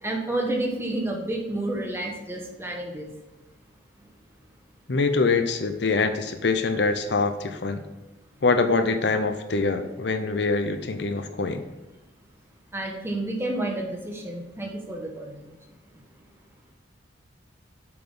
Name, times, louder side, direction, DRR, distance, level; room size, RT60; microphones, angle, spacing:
voice 1, 0.0-3.1 12.7-15.6, right 1 dB, 15° right, 1 dB, 1.3 m, -30 dB
voice 2, 4.9-7.8 8.4-11.6, left 3 dB, 65° left, 7 dB, 0.7 m, -24 dB
7.7 x 5.9 x 3.9 m, 1.1 s
head